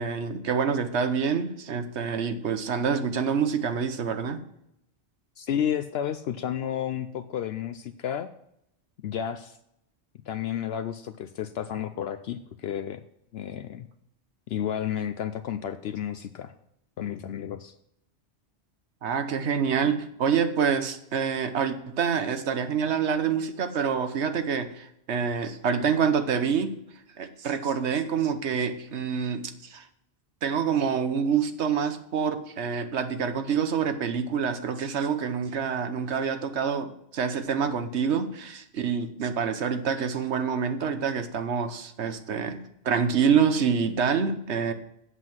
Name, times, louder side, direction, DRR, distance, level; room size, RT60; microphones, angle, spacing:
voice 1, 0.0-4.4 19.0-26.8 27.2-29.9 30.4-44.7, right 6 dB, 75° right, 9 dB, 1.2 m, -27 dB
voice 2, 5.4-8.3 9.0-9.6 10.3-13.0 13.3-13.9 14.5-16.5 17.0-17.7, left 9 dB, 70° left, 10 dB, 0.8 m, -31 dB
8.0 x 7.5 x 6.1 m, 0.78 s
omnidirectional pair, 1.1 m